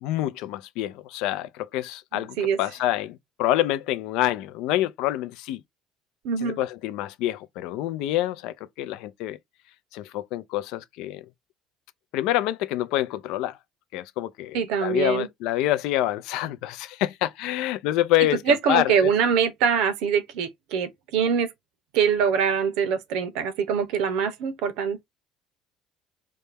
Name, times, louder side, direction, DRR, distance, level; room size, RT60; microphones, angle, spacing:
voice 1, 0.0-5.6 6.4-9.4 9.9-11.2 12.1-13.6 13.9-19.1, left 14 dB, 70° left, 0.4 m, -27 dB
voice 2, 2.1-2.6 6.2-6.6 14.5-15.3 18.5-21.5 21.9-25.0, right 6 dB, 75° right, 0.7 m, -24 dB
4.1 x 2.2 x 3.4 m
cardioid pair, 155°, 0 cm